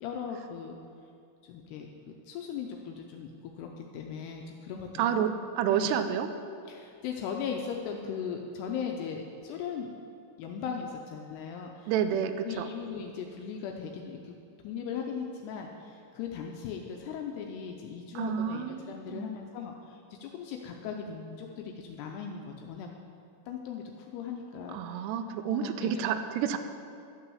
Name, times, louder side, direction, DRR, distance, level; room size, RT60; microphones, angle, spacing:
voice 1, 0.0-0.8 1.4-1.9 2.2-5.3 5.7-5.9 6.7-9.9 10.4-11.9 12.4-14.4 14.6-22.9 23.5-25.1 25.4-26.1, left 6 dB, 80° left, 2 dB, 2.6 m, -38 dB
voice 2, 5.0-6.3 11.9-12.7 18.2-19.3 24.7-26.6, right 8 dB, 85° right, 9 dB, 2.6 m, -29 dB
12.0 x 5.9 x 7.0 m, 2.5 s
omnidirectional pair, 5.0 m